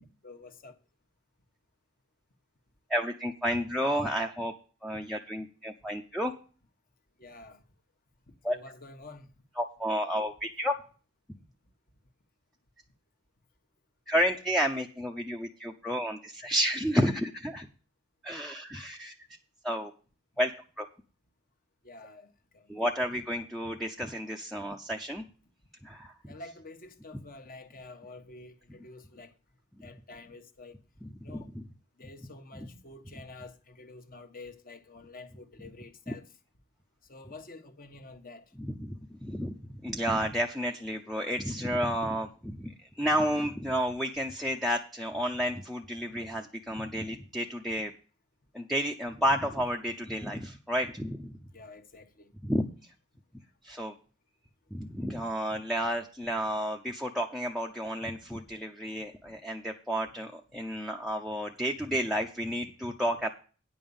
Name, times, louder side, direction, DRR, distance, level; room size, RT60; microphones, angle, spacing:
voice 1, 0.2-0.8 7.2-7.6 8.5-9.3 21.8-22.8 26.3-29.3 29.8-30.8 31.2-31.5 32.0-36.2 37.1-38.4 51.5-52.3 55.0-55.1 59.2-59.4, left 3 dB, 40° left, 1.3 m, -48 dB
voice 2, 2.9-4.5 4.8-6.3 8.4-8.6 9.6-10.7 14.1-17.7 18.2-19.1 19.6-19.9 20.4-20.5 20.8-20.9 22.7-25.2 25.8-26.1 31.0-31.6 32.6-32.7 36.1-36.2 38.6-39.6 39.8-47.9 48.5-51.3 52.4-52.6 53.6-53.9 54.7-63.3, equal, ahead, 0.7 m, -31 dB
9.8 x 5.6 x 7.0 m
head